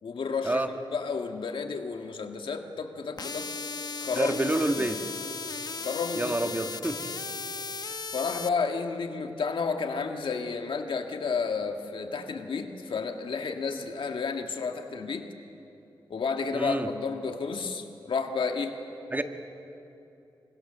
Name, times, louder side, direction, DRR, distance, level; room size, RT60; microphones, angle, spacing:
voice 1, 0.0-3.5 4.0-4.9 5.8-6.6 8.1-15.3 16.1-18.8, left 5 dB, 75° left, 4 dB, 1.7 m, -31 dB
sound 1, 3.2-8.5, left 4 dB, 50° left, 1.0 m, -36 dB
voice 2, 4.1-5.0 6.1-7.1 16.5-16.9 19.1-19.2, right 1 dB, 20° right, 6 dB, 1.7 m, -28 dB
27.5 x 24.5 x 6.9 m, 2.9 s
wide cardioid pair, 80°, 9 cm